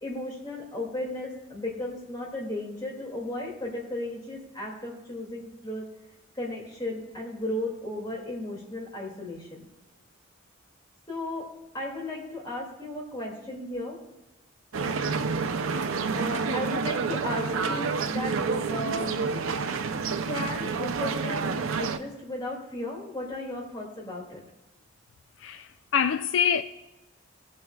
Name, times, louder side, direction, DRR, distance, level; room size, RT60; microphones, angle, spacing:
voice 1, 0.0-5.9 6.3-9.7 11.1-11.5 11.7-14.0 16.1-18.4 18.7-19.4 20.3-21.5 21.8-24.4, left 1 dB, 20° left, 2.4 m, -35 dB
sound 1, 14.7-22.0, right 4 dB, 85° right, 0.6 m, -29 dB
voice 2, 25.4-26.6, left 7 dB, 65° left, 0.3 m, -25 dB
19.0 x 7.6 x 2.4 m
head